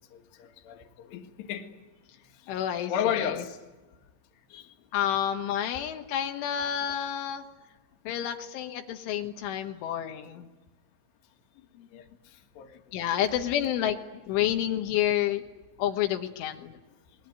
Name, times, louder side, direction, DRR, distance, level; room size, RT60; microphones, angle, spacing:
voice 1, 0.1-1.8 2.3-2.5 2.9-3.6 4.5-4.7 5.6-5.8 11.9-12.7, left 9 dB, 70° left, 3.7 m, -34 dB
voice 2, 2.5-3.4 4.9-7.5 8.1-10.5 11.8-11.9 12.9-15.4 15.8-16.8, left 11 dB, 85° left, 3.7 m, -29 dB
29.0 x 21.0 x 9.4 m
omnidirectional pair, 5.4 m